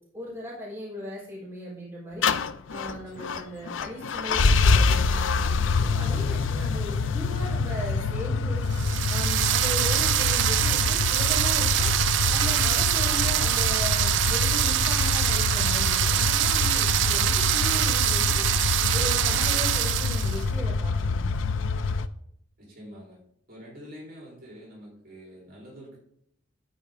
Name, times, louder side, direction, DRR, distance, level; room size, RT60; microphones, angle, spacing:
voice 1, 0.1-2.3 2.7-8.6 9.1-11.9 12.3-18.5 18.9-21.3, equal, 15° right, -7 dB, 3.9 m, -38 dB
sound 1, 2.2-22.1, left 4 dB, 85° left, 0.5 m, -26 dB
voice 2, 3.0-3.4 22.6-23.2 23.5-26.0, equal, 50° right, -4 dB, 3.5 m, -46 dB
sound 2, 8.7-20.4, right 13 dB, 70° right, 0.4 m, -24 dB
12.0 x 4.9 x 3.6 m, 0.71 s
head